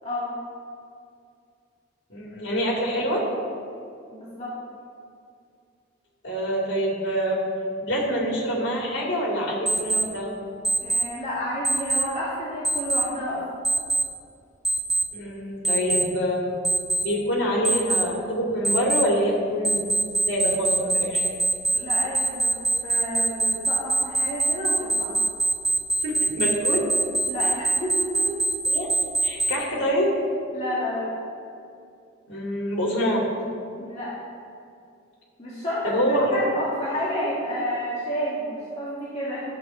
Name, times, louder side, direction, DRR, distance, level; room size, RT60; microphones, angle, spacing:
voice 1, 0.0-0.3 4.1-4.5 10.8-13.4 21.7-22.6 22.8-25.1 27.3-28.2 30.5-31.1 33.8-34.1 35.4-39.4, equal, 35° left, -8 dB, 2.0 m, -30 dB
voice 2, 2.1-3.2 6.2-7.4 7.8-10.3 15.1-16.4 17.0-19.9 20.3-21.4 26.0-26.8 28.7-28.9 29.2-30.1 32.3-33.2 35.8-36.6, equal, 65° left, -3 dB, 2.4 m, -25 dB
Alarm, 9.7-10.0 10.6-11.0 11.6-12.0 12.6-13.0 13.6-14.0 14.6-15.0 15.6-16.0 16.6-17.0 17.6-18.0 18.6-19.0 19.6-29.5, right 2 dB, ahead, 0.9 m, -22 dB
11.5 x 7.4 x 4.4 m, 2.4 s
head